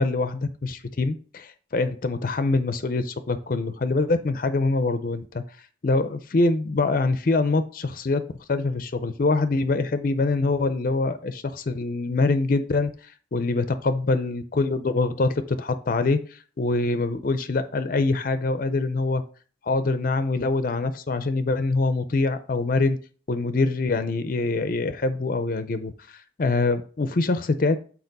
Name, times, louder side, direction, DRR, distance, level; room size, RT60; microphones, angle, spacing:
voice 1, 0.0-5.4 5.8-8.2 8.5-19.2 19.6-23.0 23.3-27.8, left 3 dB, 45° left, 10 dB, 0.5 m, -24 dB
6.6 x 4.3 x 4.0 m, 0.40 s
head